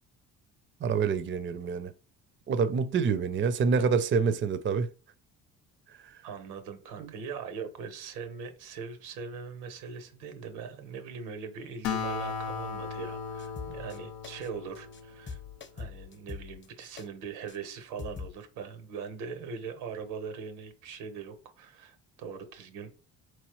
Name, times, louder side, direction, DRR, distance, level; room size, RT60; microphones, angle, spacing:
voice 1, 0.8-1.9 2.5-4.9 6.0-6.1 7.0-7.1, right 5 dB, 35° right, 0.5 m, -27 dB
voice 2, 6.2-15.4 15.7-23.0, right 6 dB, 85° right, 1.1 m, -41 dB
Acoustic guitar, 11.8-15.6, left 6 dB, 80° left, 0.7 m, -36 dB
sound 1, 13.4-14.0 14.2-14.5 14.7-15.0 15.3-17.1 17.5-17.6 18.0-18.3, left 5 dB, 30° left, 0.8 m, -42 dB
4.3 x 3.1 x 3.0 m
supercardioid pair, 70°, 36 cm